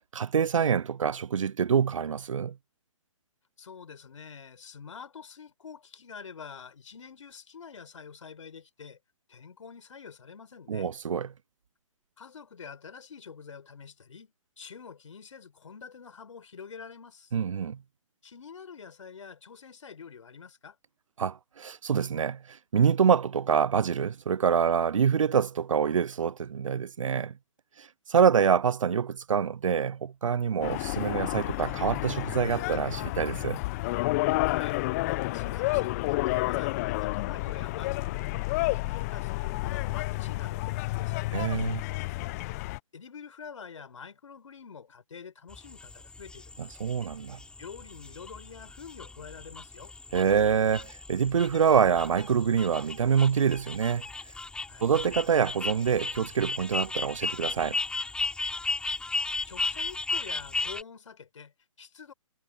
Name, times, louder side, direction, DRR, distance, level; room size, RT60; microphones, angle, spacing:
voice 1, 0.1-2.6 10.7-11.3 17.3-17.8 21.2-27.3 27.8-33.6 41.3-41.8 46.6-47.4 50.1-54.1 54.8-57.8, right 7 dB, 70° right, 0.6 m, -26 dB
voice 2, 3.6-9.0 9.3-10.9 12.2-17.3 18.2-20.8 34.5-34.9 35.3-38.2 38.5-41.4 42.9-46.8 47.6-49.9 54.7-54.8 59.5-62.1, left 6 dB, 65° left, 4.9 m, -47 dB
sound 1, 30.6-42.8, left 21 dB, 30° left, 0.8 m, -30 dB
sound 2, 45.5-60.8, left 3 dB, 5° left, 4.8 m, -35 dB
figure-of-eight pair, 135°, 17 cm